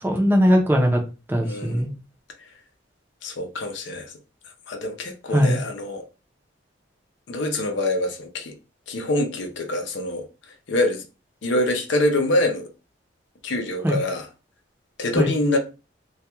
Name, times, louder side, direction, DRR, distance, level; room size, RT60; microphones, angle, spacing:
voice 1, 0.0-1.0 1.3-1.9 5.3-5.6 13.8-14.0 15.2-15.3, equal, 10° right, 0.5 m, -19 dB
voice 2, 1.4-1.9 3.2-4.1 4.7-6.0 7.3-8.6 8.9-10.2 10.7-11.0 11.4-12.7 13.4-14.3 15.0-15.6, left 1 dB, 70° left, 0.5 m, -25 dB
2.3 x 2.2 x 2.8 m
head